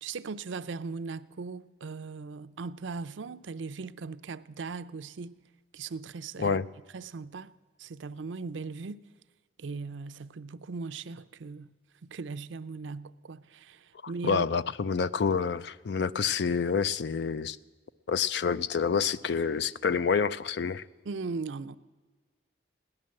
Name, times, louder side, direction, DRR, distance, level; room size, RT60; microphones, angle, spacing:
voice 1, 0.0-5.4 5.7-6.6 6.9-7.5 7.8-9.0 9.6-11.7 12.0-14.4 21.1-21.8, right 4 dB, 80° right, 0.5 m, -38 dB
voice 2, 14.2-17.6 18.1-20.8, left 6 dB, 65° left, 0.4 m, -28 dB
16.5 x 10.5 x 7.5 m
head